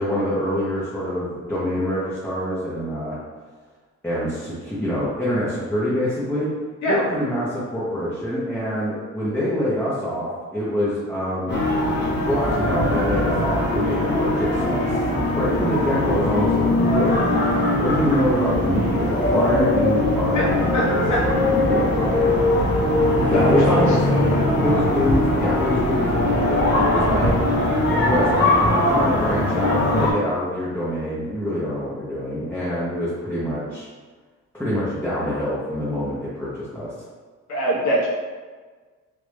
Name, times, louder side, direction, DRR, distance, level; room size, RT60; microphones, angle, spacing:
voice 1, 0.0-3.2 4.0-6.5 6.9-11.5 12.3-15.0 15.3-17.2 17.7-21.0 21.4-22.4 23.3-24.0 24.6-27.3 28.0-33.9 34.5-36.9, equal, 5° left, -10 dB, 0.7 m, -25 dB
sound 1, 11.5-30.1, left 1 dB, 35° left, 0.8 m, -20 dB
voice 2, 20.7-21.2 23.3-23.9 37.5-38.1, equal, 70° left, -5 dB, 1.0 m, -22 dB
3.4 x 2.5 x 3.0 m, 1.4 s
cardioid pair, 140°, 30 cm